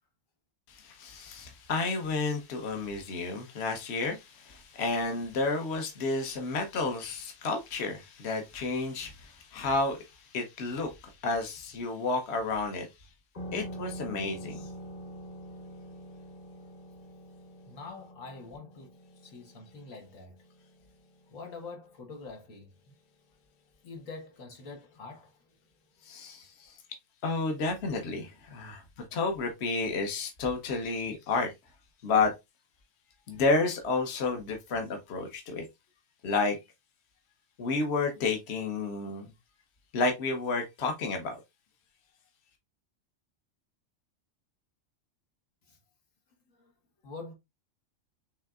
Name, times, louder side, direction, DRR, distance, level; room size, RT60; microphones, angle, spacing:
voice 1, 0.7-12.9 13.5-14.7 26.0-26.8 27.2-28.8 29.1-31.5 32.0-32.3 33.3-35.6 36.2-36.6 37.6-39.3 39.9-41.4, left 3 dB, 55° left, 1.2 m, -31 dB
sound 1, 13.3-22.5, equal, 30° left, 1.1 m, -45 dB
voice 2, 17.7-19.0 19.2-20.3 21.3-22.7 23.8-25.3 45.7-45.8 46.5-46.7 47.0-47.3, left 3 dB, 85° left, 1.8 m, -45 dB
6.3 x 3.4 x 2.4 m
omnidirectional pair, 1.3 m